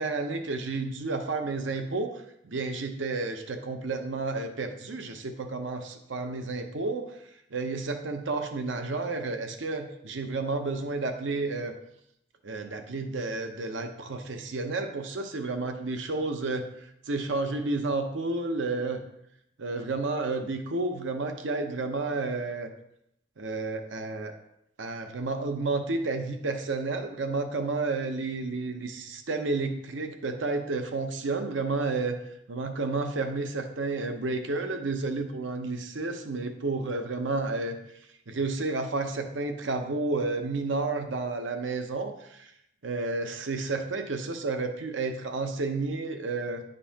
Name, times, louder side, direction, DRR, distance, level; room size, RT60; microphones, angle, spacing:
voice 1, 0.0-7.1 7.5-11.7 12.4-19.0 19.6-22.7 23.4-24.3 24.8-32.2 32.5-37.8 38.3-42.5 42.8-46.6, right 3 dB, 75° right, 6 dB, 0.7 m, -31 dB
10.0 x 5.4 x 2.8 m, 0.77 s
head